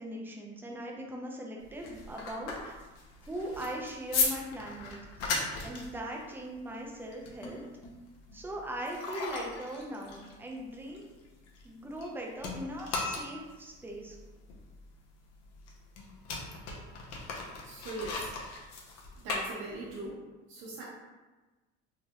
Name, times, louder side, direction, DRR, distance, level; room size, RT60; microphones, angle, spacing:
voice 1, 0.0-2.8 3.3-5.0 5.6-7.6 8.3-11.0 11.6-14.2, right 1 dB, 5° right, -1 dB, 0.4 m, -40 dB
sound 1, 1.6-12.1 12.4-20.1, left 4 dB, 60° left, 0.7 m, -38 dB
voice 2, 17.6-18.3 19.2-20.1 20.5-20.8, right 2 dB, 75° right, -8 dB, 1.0 m, -40 dB
3.2 x 2.7 x 2.2 m, 1.2 s
supercardioid pair, 110°, 30 cm